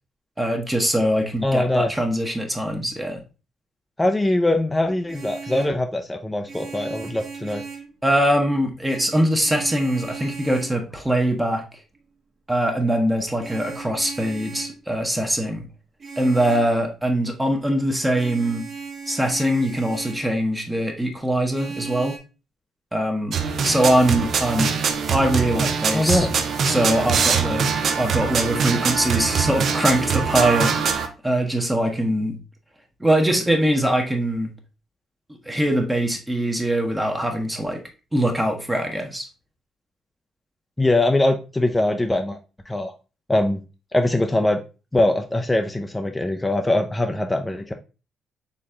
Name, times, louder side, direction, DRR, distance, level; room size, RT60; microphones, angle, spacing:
voice 1, 0.4-3.2 8.0-11.6 12.5-15.6 16.2-18.6 19.1-22.2 22.9-23.4 23.6-24.7 25.1-26.3 26.6-27.7 28.0-30.7 31.2-32.4 33.0-34.5 35.5-37.8 38.1-39.3, right 1 dB, 10° right, 3 dB, 0.9 m, -22 dB
voice 2, 1.4-1.9 4.0-7.6 25.9-26.3 40.8-42.4 42.7-42.9 43.3-43.6 43.9-44.6 44.9-47.7, left 1 dB, 10° left, 4 dB, 0.4 m, -22 dB
Vehicle horn car horn honking, 4.9-5.8 6.5-7.9 8.8-10.8 13.4-14.8 16.0-16.7 18.1-20.3 21.5-22.2, right 5 dB, 45° right, 1.3 m, -37 dB
sound 1, 23.3-31.1, right 6 dB, 60° right, 0.6 m, -23 dB
4.2 x 3.2 x 3.5 m, 0.32 s
cardioid pair, 90°, 0 cm